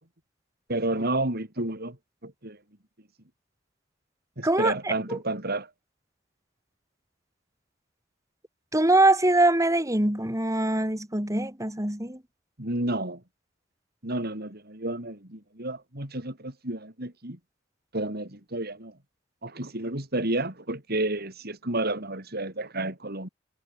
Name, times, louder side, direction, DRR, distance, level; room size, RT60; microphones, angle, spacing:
voice 1, 0.7-2.0 2.2-2.6 4.4-5.7 12.6-13.2 14.0-17.4 17.9-18.9 19.4-23.3, right 2 dB, 50° right, 5.5 m, -31 dB
voice 2, 4.4-5.2 8.7-12.2, right 2 dB, 15° right, 4.2 m, -23 dB
head